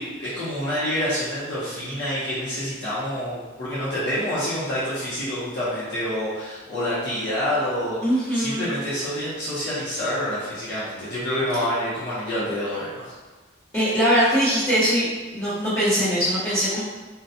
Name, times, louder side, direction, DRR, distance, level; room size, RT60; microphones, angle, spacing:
voice 1, 0.0-8.0 8.3-13.1, equal, 65° left, -10 dB, 0.8 m, -27 dB
voice 2, 8.0-8.7 13.7-15.1 15.3-16.8, equal, 10° left, -16 dB, 0.8 m, -21 dB
3.9 x 2.2 x 2.7 m, 1.3 s
head